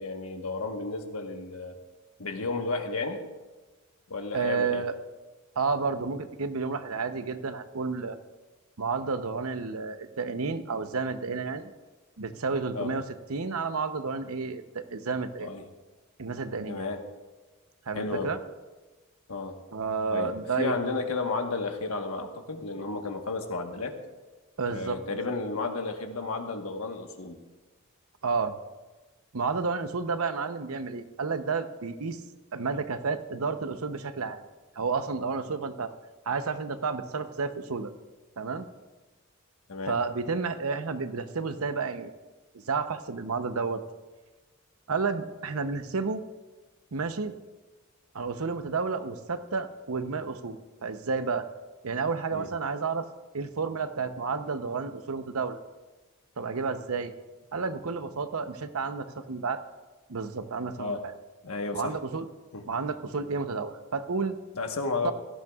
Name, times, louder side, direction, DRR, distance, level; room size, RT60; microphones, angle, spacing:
voice 1, 0.0-1.7 2.2-3.3 4.1-4.8 12.7-12.9 15.4-15.6 16.7-17.0 17.9-18.3 19.3-19.6 20.1-23.9 24.7-27.4 39.7-40.0 52.3-52.5 60.8-61.0 61.4-62.0 62.5-62.7 64.6-65.1, left 3 dB, 85° left, 4 dB, 1.3 m, -32 dB
voice 2, 4.3-4.9 5.6-8.2 8.8-11.7 12.2-13.0 13.3-15.5 16.2-16.9 17.9-18.4 19.7-20.7 24.6-25.2 28.2-28.5 29.3-32.2 32.5-34.4 34.8-35.9 36.3-37.9 38.4-38.7 39.9-42.1 42.5-43.8 44.9-46.2 46.9-47.3 48.1-51.5 51.8-53.1 53.3-55.6 56.4-57.1 57.5-59.6 60.1-61.1 61.7-62.3 62.7-64.4 65.0-65.1, right 4 dB, 85° right, 9 dB, 0.8 m, -31 dB
16.5 x 13.5 x 2.4 m, 1.2 s
head